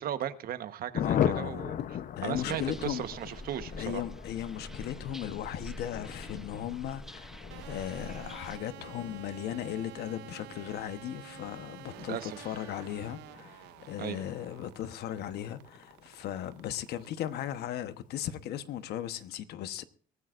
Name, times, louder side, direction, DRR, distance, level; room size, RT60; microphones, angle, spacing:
voice 1, 0.0-4.0 12.0-12.6 14.0-14.3, right 10 dB, 60° right, 1.2 m, -37 dB
Thunder, 0.9-17.1 17.3-17.4 17.7-17.9 18.1-18.5, left 9 dB, 50° left, 0.8 m, -39 dB
voice 2, 1.0-1.6 2.2-3.0 3.8-19.8, left 11 dB, 75° left, 1.1 m, -37 dB
sound 1, 2.3-8.6, equal, ahead, 0.8 m, -46 dB
sound 2, 7.5-17.6, right 17 dB, 90° right, 0.7 m, -50 dB
23.0 x 14.0 x 2.5 m
cardioid pair, 110°, 17 cm